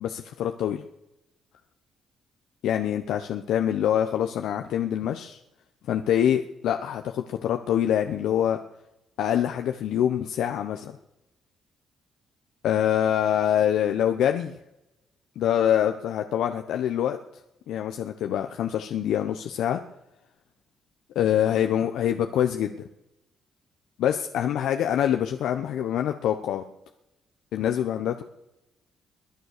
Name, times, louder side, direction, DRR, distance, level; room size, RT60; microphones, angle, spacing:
voice 1, 0.0-0.8 2.6-5.4 5.9-8.6 9.2-10.9 12.6-14.5 15.4-17.2 17.7-19.8 21.1-22.8 24.0-26.6 27.5-28.2, left 10 dB, 80° left, 5 dB, 0.9 m, -25 dB
22.0 x 9.4 x 6.7 m, 0.89 s
cardioid pair, 90°, 0 cm